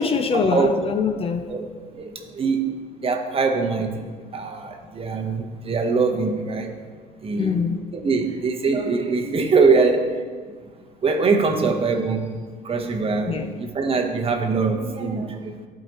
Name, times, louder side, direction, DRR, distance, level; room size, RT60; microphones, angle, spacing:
voice 1, 0.0-1.6 7.4-7.8 13.3-13.6, left 5 dB, 35° left, 7 dB, 0.5 m, -23 dB
voice 2, 1.5-2.7 3.0-4.1 4.3-6.7 7.2-10.2 11.0-12.3 12.6-15.5, right 4 dB, 35° right, 4 dB, 0.9 m, -23 dB
14.5 x 4.8 x 3.0 m, 1.5 s
cardioid pair, 110°, 17 cm